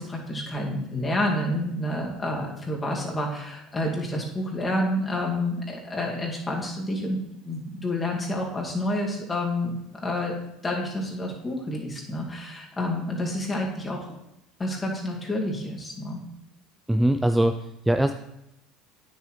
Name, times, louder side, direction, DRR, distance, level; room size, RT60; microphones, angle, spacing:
voice 1, 0.0-7.2 7.4-9.7 10.0-14.0 14.6-16.2, left 1 dB, 20° left, -1 dB, 2.3 m, -29 dB
voice 2, 16.9-18.1, right 1 dB, 5° right, 7 dB, 0.4 m, -22 dB
9.1 x 7.6 x 3.3 m, 0.83 s
hypercardioid pair, 75°, 0 cm